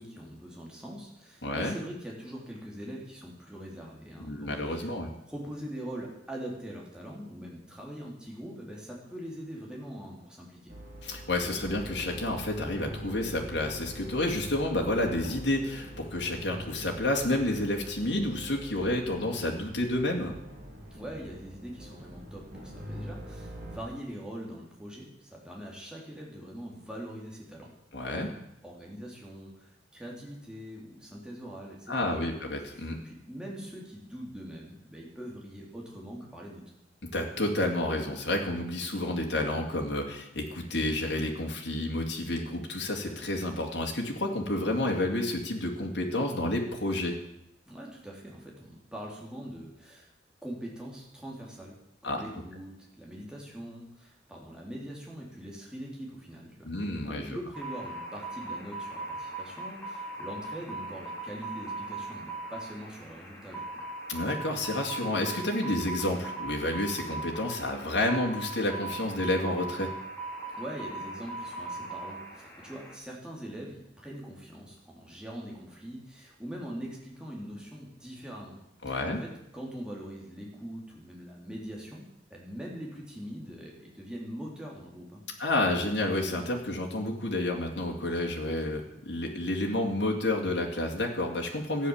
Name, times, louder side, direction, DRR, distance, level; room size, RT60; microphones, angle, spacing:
voice 1, 0.0-4.9 5.3-10.7 20.9-27.7 28.1-28.3 28.6-32.4 32.7-36.6 47.7-50.1 50.4-51.8 52.0-63.6 70.5-78.6 78.9-82.1 82.3-85.2, equal, 5° right, -3 dB, 3.5 m, -42 dB
voice 2, 1.4-1.8 4.2-5.1 11.0-20.3 27.9-28.3 31.9-33.0 37.1-47.2 52.0-52.2 56.6-57.4 64.1-69.9 78.8-79.2 85.4-91.9, left 1 dB, 75° left, 0 dB, 2.5 m, -30 dB
sound 1, 10.7-23.8, equal, 50° right, 4.6 m, -43 dB
sound 2, 57.5-72.9, right 2 dB, 10° left, 3.0 m, -39 dB
13.5 x 9.6 x 7.2 m, 0.81 s
head